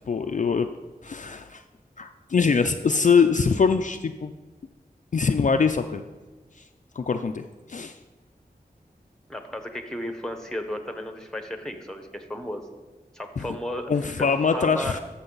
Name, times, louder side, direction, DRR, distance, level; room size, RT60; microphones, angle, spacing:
voice 1, 0.1-0.7 1.0-1.6 2.0-4.3 5.1-6.0 6.6-6.7 7.0-7.4 7.7-8.0 13.4-13.5 13.9-15.0, left 5 dB, 50° left, 7 dB, 0.4 m, -23 dB
voice 2, 9.3-12.7 13.1-14.3 14.5-15.0, left 1 dB, 5° left, 6 dB, 1.0 m, -34 dB
13.5 x 6.1 x 4.0 m, 1.2 s
wide cardioid pair, 70°, 16 cm